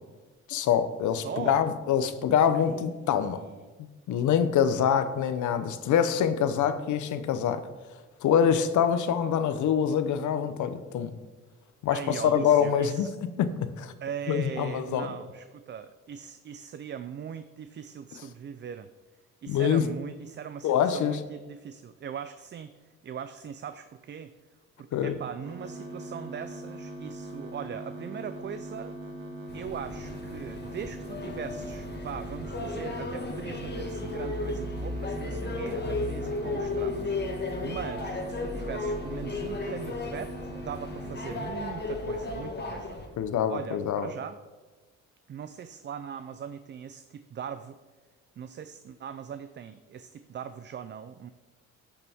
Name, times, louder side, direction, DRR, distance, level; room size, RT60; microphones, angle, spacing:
voice 1, 0.5-3.4 4.1-7.7 8.2-11.1 11.8-13.1 13.4-13.9 14.3-15.1 19.5-19.9 20.6-21.2 24.9-25.2 43.2-44.1, left 8 dB, 75° left, 11 dB, 0.8 m, -25 dB
voice 2, 1.2-1.6 2.5-3.7 11.9-13.2 14.0-18.9 19.4-22.7 23.0-24.3 24.8-29.0 29.5-40.3 40.6-43.0 43.5-44.4 45.3-47.8 48.4-51.3, right 8 dB, 40° right, 11 dB, 0.4 m, -40 dB
sound 1, 25.4-41.4, right 1 dB, 80° right, 1.6 m, -41 dB
sound 2, 29.5-43.1, left 2 dB, 35° left, 1.6 m, -34 dB
11.5 x 6.7 x 3.5 m, 1.3 s
cardioid pair, 90°, 30 cm